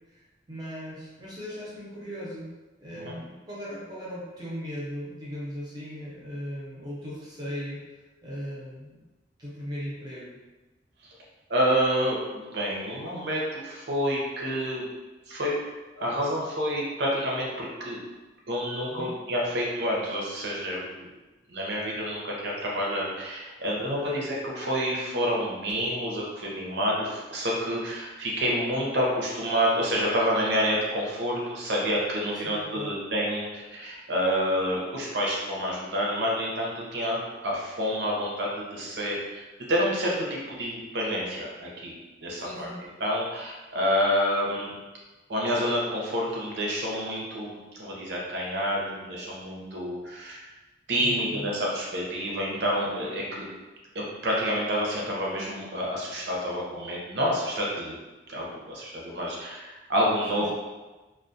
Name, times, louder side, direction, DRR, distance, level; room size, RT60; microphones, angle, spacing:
voice 1, 0.5-2.5 2.8-7.8 8.2-9.0 9.4-10.4 18.9-19.1 24.1-24.3 32.4-33.0 42.4-42.8 51.0-51.5 60.3-60.5, equal, 20° right, -7 dB, 0.5 m, -38 dB
voice 2, 11.5-14.9 15.3-15.6 15.9-18.0 18.5-21.1 21.5-41.9 42.2-44.7 45.3-50.4 50.9-53.4 53.9-58.0 58.3-60.5, equal, 75° right, -3 dB, 0.6 m, -28 dB
2.2 x 2.1 x 2.6 m, 1.2 s
head